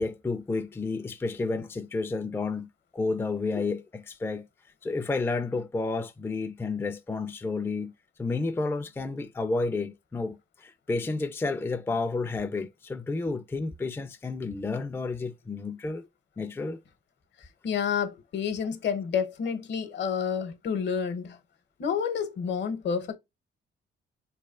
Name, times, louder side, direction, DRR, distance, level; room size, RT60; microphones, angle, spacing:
voice 1, 0.0-4.5 4.8-7.9 8.2-16.0 16.4-16.8, left 3 dB, 10° left, 0.4 m, -31 dB
voice 2, 17.6-21.4 21.8-23.2, left 7 dB, 60° left, 0.8 m, -29 dB
4.0 x 3.2 x 2.3 m
cardioid pair, 90°, 20 cm